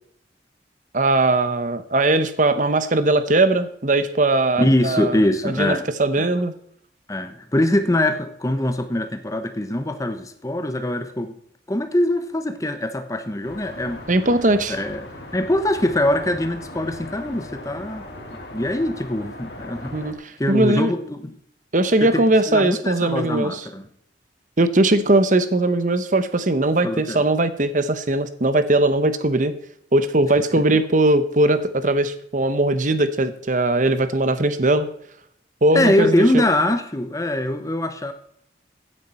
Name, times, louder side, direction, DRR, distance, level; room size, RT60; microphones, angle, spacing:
voice 1, 0.9-5.2 5.4-6.5 14.1-14.8 19.9-20.1 20.5-20.9 21.7-23.6 24.6-29.5 29.9-34.9 35.6-36.4, right 2 dB, 45° right, 11 dB, 1.0 m, -19 dB
voice 2, 4.6-5.8 6.2-6.3 7.1-11.3 11.7-14.0 14.7-15.0 15.3-18.1 18.5-19.9 20.4-21.3 22.0-23.9 26.8-27.2 35.7-38.1, left 1 dB, 20° left, 9 dB, 1.0 m, -23 dB
sound 1, 13.4-20.1, left 1 dB, 65° left, 2.7 m, -38 dB
16.0 x 9.9 x 4.3 m, 0.68 s
head